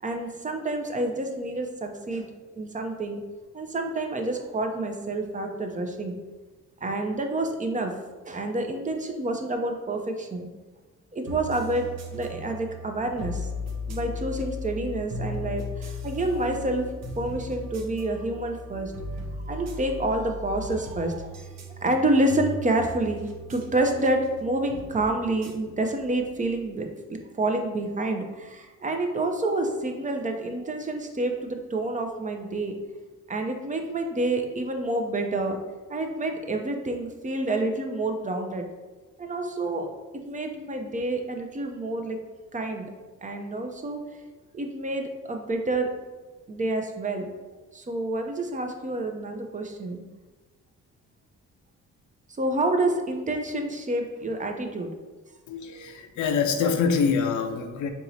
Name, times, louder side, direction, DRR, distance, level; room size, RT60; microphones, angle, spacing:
voice 1, 0.0-2.3 2.6-3.2 3.5-6.2 6.8-7.9 8.3-10.5 11.1-13.5 13.9-16.9 17.2-18.9 19.5-21.5 21.8-32.8 33.3-35.6 35.9-38.7 39.2-39.9 40.2-42.2 42.5-42.9 43.2-44.0 44.5-45.9 46.5-47.3 47.7-50.0 52.4-54.9, right 2 dB, 25° right, 4 dB, 0.5 m, -28 dB
sound 1, 11.3-26.5, left 2 dB, 60° right, 0.7 m, -37 dB
voice 2, 55.5-57.9, left 5 dB, 75° left, 6 dB, 0.6 m, -25 dB
4.6 x 2.9 x 2.7 m, 1.3 s
cardioid pair, 90°, 30 cm